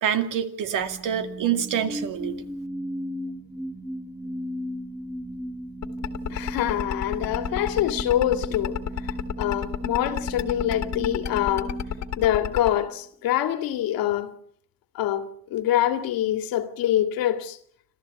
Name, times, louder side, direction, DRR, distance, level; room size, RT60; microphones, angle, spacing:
voice 1, 0.0-2.3, right 9 dB, 60° right, 2.5 m, -26 dB
sound 1, 0.8-12.9, right 1 dB, 5° right, 1.4 m, -36 dB
sound 2, 5.8-12.7, left 10 dB, 50° left, 2.0 m, -29 dB
voice 2, 6.3-11.8 12.2-14.3 14.9-17.6, left 12 dB, 75° left, 2.3 m, -25 dB
26.5 x 14.5 x 8.4 m
cardioid pair, 130°, 35 cm